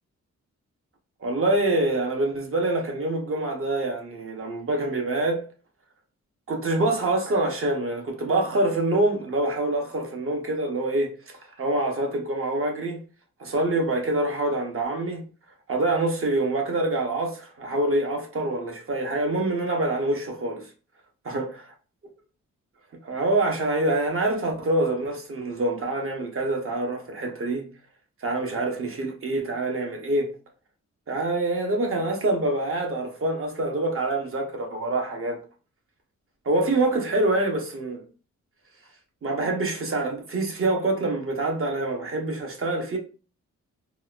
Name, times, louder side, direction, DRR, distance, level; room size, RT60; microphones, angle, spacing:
voice 1, 1.2-5.4 6.5-11.1 11.6-13.0 13.4-15.2 15.7-20.6 21.3-21.5 23.0-27.7 28.2-30.3 31.1-35.4 36.4-38.0 39.2-43.0, right 2 dB, 45° right, 0.9 m, -25 dB
4.0 x 2.3 x 2.4 m
wide cardioid pair, 125°, 30 cm